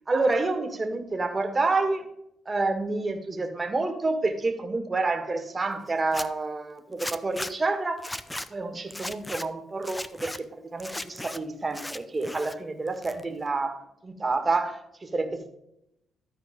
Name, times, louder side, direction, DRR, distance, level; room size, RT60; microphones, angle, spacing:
voice 1, 0.1-2.1 2.5-8.1 8.5-15.5, right 3 dB, 25° right, 6 dB, 1.8 m, -28 dB
Zipper (clothing), 6.0-6.3 7.0-7.5 8.0-8.5 8.9-9.4 9.8-10.4 10.8-11.4 11.7-12.5 12.9-13.5, left 1 dB, 10° left, 0.6 m, -36 dB
13.5 x 4.6 x 5.1 m, 0.79 s
cardioid pair, 90°, 0 cm